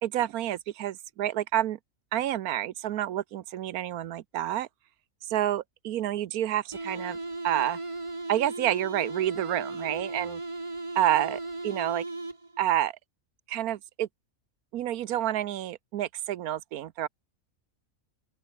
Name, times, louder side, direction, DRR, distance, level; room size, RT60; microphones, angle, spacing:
voice 1, 0.0-1.8 2.1-4.7 5.3-7.2 7.4-7.8 8.3-10.4 11.0-12.0 12.6-12.9 13.5-14.1 14.7-17.1, right 12 dB, 90° right, 1.2 m, -29 dB
sound 1, 6.7-12.7, right 2 dB, 20° right, 1.6 m, -36 dB
open air
omnidirectional pair, 1.5 m